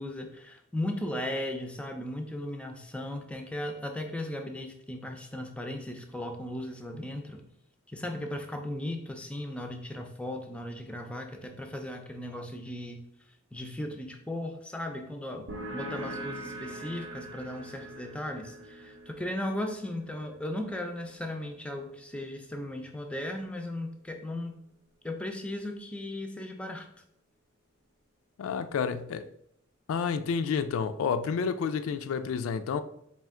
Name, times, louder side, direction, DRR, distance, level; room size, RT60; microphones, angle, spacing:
voice 1, 0.0-7.4 7.9-13.0 13.5-24.5 25.0-26.9, left 1 dB, 5° left, 0.4 m, -36 dB
sound 1, 15.5-22.7, right 1 dB, 60° right, 0.7 m, -43 dB
voice 2, 28.4-29.3 29.9-32.8, left 6 dB, 85° left, 0.3 m, -30 dB
4.3 x 2.4 x 3.6 m
head